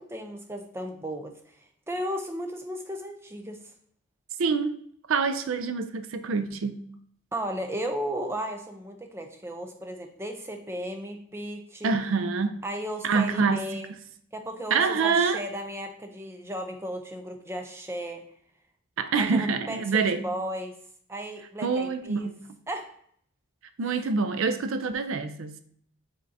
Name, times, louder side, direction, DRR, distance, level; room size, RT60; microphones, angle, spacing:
voice 1, 0.0-1.3 1.9-3.6 7.3-11.9 12.6-13.9 14.3-18.2 19.1-20.8 21.1-22.3 22.7-22.9, right 1 dB, 10° right, 4 dB, 0.5 m, -35 dB
voice 2, 4.4-4.8 5.1-6.8 11.8-12.6 13.0-13.7 14.7-15.4 19.0-20.2 21.6-22.4 23.8-25.6, right 4 dB, 80° right, 10 dB, 0.4 m, -26 dB
5.3 x 3.7 x 2.7 m, 0.62 s
head